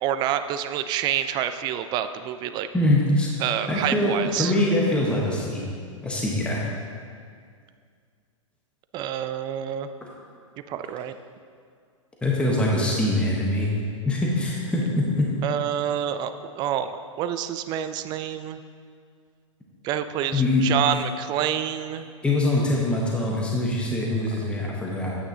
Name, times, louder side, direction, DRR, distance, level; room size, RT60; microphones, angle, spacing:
voice 1, 0.0-2.7 3.4-4.5 8.9-9.9 10.7-11.1 15.4-16.9 17.2-18.6 19.8-22.1, right 10 dB, 25° right, 11 dB, 0.3 m, -27 dB
voice 2, 2.7-3.3 3.7-4.1 4.4-5.6 6.0-6.6 12.2-13.7 14.0-15.3 20.3-20.6 22.2-25.1, left 1 dB, 5° left, -3 dB, 1.0 m, -23 dB
8.8 x 8.6 x 2.7 m, 2.2 s
hypercardioid pair, 115°, 17 cm